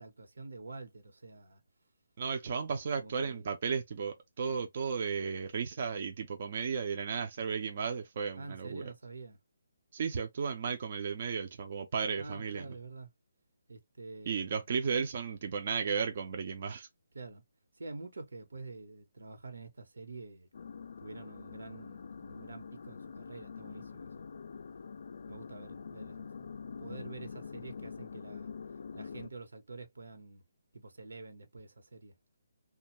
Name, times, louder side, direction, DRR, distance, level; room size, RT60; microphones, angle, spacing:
voice 1, 0.0-1.6 2.5-2.6 2.9-3.5 8.4-9.4 12.2-13.1 13.7-14.7 17.1-17.4 17.8-20.5 21.0-24.3 25.3-26.5 26.8-28.5 28.9-30.4 30.7-32.2, right 3 dB, 90° right, 1.0 m, -47 dB
voice 2, 2.2-8.8 9.9-12.6 14.3-16.9, right 6 dB, 35° right, 0.4 m, -34 dB
sound 1, 20.5-29.3, left 5 dB, 55° left, 0.3 m, -45 dB
2.6 x 2.2 x 2.9 m
hypercardioid pair, 175°, 0 cm